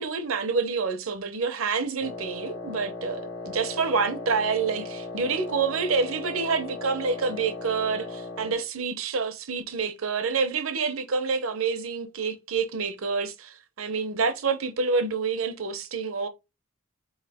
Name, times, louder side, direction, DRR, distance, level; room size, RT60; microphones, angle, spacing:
voice 1, 0.0-16.3, right 5 dB, 75° right, 0.8 m, -28 dB
Wind instrument woodwind instrument, 2.0-8.6, left 3 dB, 90° left, 1.4 m, -37 dB
4.1 x 3.2 x 3.4 m
head